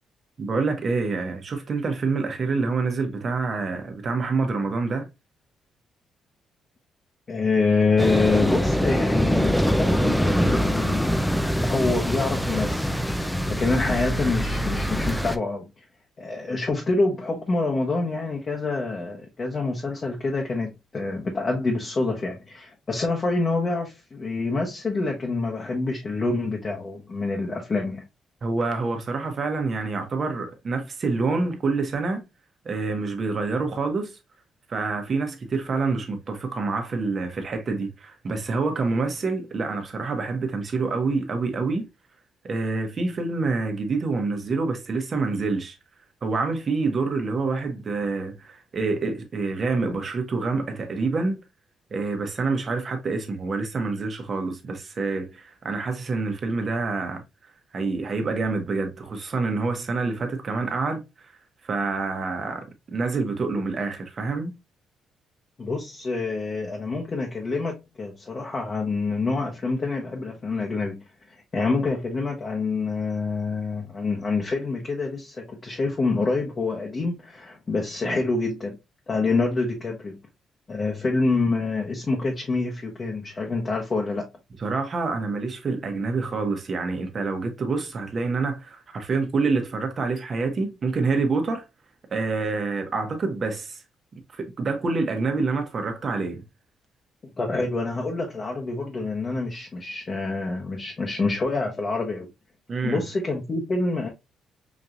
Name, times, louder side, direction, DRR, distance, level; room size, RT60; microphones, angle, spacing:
voice 1, 0.4-5.1 28.4-32.3 32.6-34.2 34.7-41.9 42.4-45.8 46.2-51.4 51.9-57.2 57.7-61.0 61.6-62.6 62.9-64.5 78.0-78.1 84.6-91.6 92.1-93.8 94.3-96.4 102.7-103.0, right 3 dB, 45° right, 1.0 m, -27 dB
voice 2, 7.3-11.2 11.6-12.9 13.1-15.7 16.2-28.0 65.6-71.0 71.5-78.8 79.1-80.2 80.7-84.3 97.2-102.3 102.8-104.1, left 3 dB, 35° left, 0.9 m, -26 dB
sound 1, 8.0-15.4, equal, 5° left, 0.4 m, -24 dB
5.1 x 2.8 x 2.4 m
cardioid pair, 90°, 0 cm